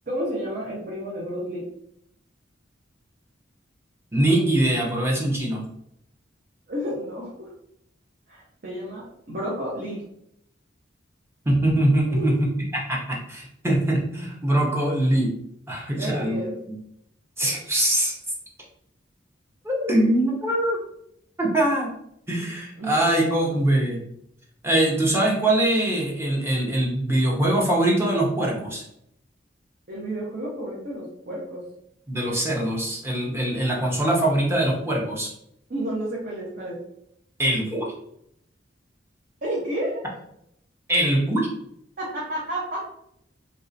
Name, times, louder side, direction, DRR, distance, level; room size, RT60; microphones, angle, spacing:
voice 1, 0.1-1.7 6.7-7.5 8.3-10.0 12.1-12.4 16.0-16.6 22.8-23.6 29.9-31.6 35.7-36.8 39.4-40.0 42.0-42.8, right 1 dB, 50° right, -5 dB, 0.8 m, -31 dB
voice 2, 4.1-5.6 11.4-12.5 12.7-15.3 15.7-16.4 17.4-18.1 19.6-20.8 21.4-21.9 22.3-24.0 24.6-28.8 32.1-35.3 37.4-37.8 40.9-41.5, right 1 dB, 15° right, -2 dB, 0.7 m, -22 dB
3.2 x 2.6 x 2.6 m, 0.74 s
head